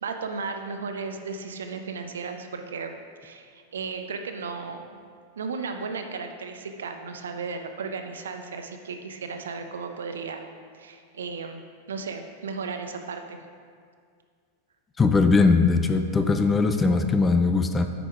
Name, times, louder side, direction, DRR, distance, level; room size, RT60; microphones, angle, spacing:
voice 1, 0.0-2.9 3.2-4.8 5.4-10.5 10.7-11.6 11.9-13.4, right 4 dB, 65° right, 6 dB, 0.6 m, -35 dB
voice 2, 15.0-17.9, left 4 dB, 15° left, 7 dB, 0.5 m, -20 dB
8.6 x 5.2 x 4.8 m, 2.1 s
figure-of-eight pair, 90°, 0 cm